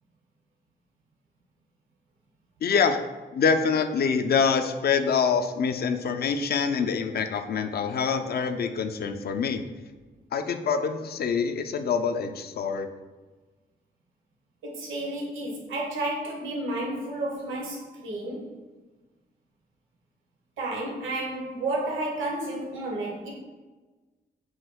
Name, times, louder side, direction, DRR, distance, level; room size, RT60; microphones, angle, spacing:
voice 1, 2.6-9.6 10.3-12.9, left 6 dB, 50° left, 8 dB, 0.4 m, -25 dB
voice 2, 14.6-18.6 20.6-23.3, right 2 dB, 85° right, -2 dB, 0.7 m, -31 dB
3.1 x 2.2 x 3.4 m, 1.3 s
supercardioid pair, 40°, 20 cm